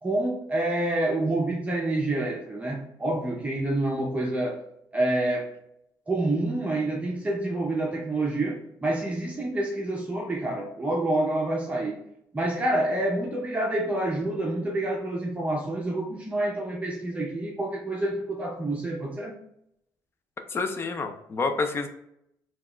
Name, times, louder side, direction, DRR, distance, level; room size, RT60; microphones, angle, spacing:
voice 1, 0.0-4.6 4.9-5.5 6.1-12.0 12.3-19.4, right 1 dB, 15° right, -2 dB, 0.6 m, -27 dB
voice 2, 20.5-21.9, left 4 dB, 30° left, 7 dB, 0.5 m, -28 dB
4.5 x 2.3 x 3.0 m, 0.77 s
cardioid pair, 125°, 8 cm